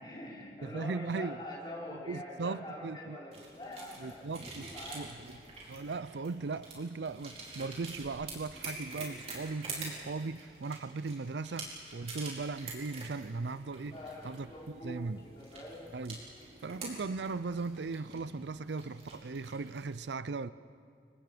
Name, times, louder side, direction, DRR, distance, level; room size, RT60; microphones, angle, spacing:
voice 1, 0.0-4.2 4.6-5.1 13.9-15.9, left 1 dB, 25° left, 5.4 m, -45 dB
voice 2, 0.6-1.4 1.9-3.2 4.0-5.4 5.7-14.0 14.2-15.3 15.9-16.2 16.6-20.5, right 4 dB, 80° right, 0.5 m, -38 dB
sound 1, 3.3-19.9, right 3 dB, 35° right, 4.8 m, -47 dB
30.0 x 24.0 x 5.1 m
head